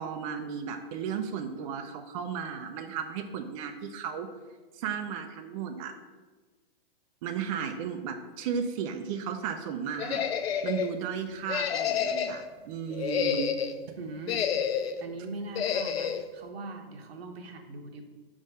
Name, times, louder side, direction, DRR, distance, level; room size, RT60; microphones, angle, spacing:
voice 1, 0.0-4.3 4.7-5.9 7.2-10.2 10.6-13.6, right 7 dB, 35° right, 5 dB, 0.4 m, -34 dB
sound 1, 10.0-10.9 11.5-12.4 12.9-13.8 14.3-15.0 15.6-16.2, left 8 dB, 80° left, 0.5 m, -29 dB
voice 2, 14.0-18.0, right 3 dB, 80° right, 4 dB, 1.0 m, -41 dB
5.2 x 3.6 x 5.3 m, 1.4 s
hypercardioid pair, 130°, 30 cm